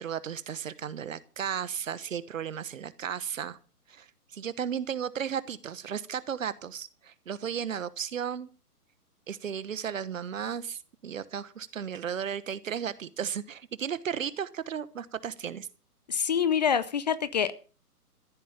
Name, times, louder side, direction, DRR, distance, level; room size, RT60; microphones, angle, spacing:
voice 1, 0.0-3.6 3.9-8.5 9.3-15.7, right 8 dB, 55° right, 17 dB, 1.3 m, -34 dB
voice 2, 16.1-17.5, left 7 dB, 30° left, 15 dB, 0.6 m, -26 dB
14.5 x 8.7 x 7.1 m, 0.38 s
figure-of-eight pair, 130°, 46 cm